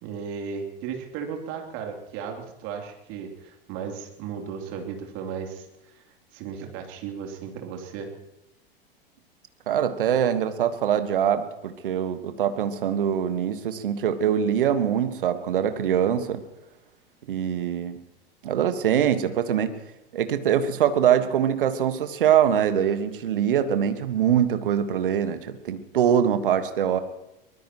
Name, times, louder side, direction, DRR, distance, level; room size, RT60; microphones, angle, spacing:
voice 1, 0.0-5.7 6.3-8.1, right 7 dB, 45° right, 3 dB, 3.2 m, -35 dB
voice 2, 9.7-16.4 17.3-18.0 18.4-19.7 20.1-27.0, right 9 dB, 65° right, 10 dB, 1.5 m, -23 dB
23.5 x 20.0 x 3.0 m, 0.93 s
figure-of-eight pair, 85°, 29 cm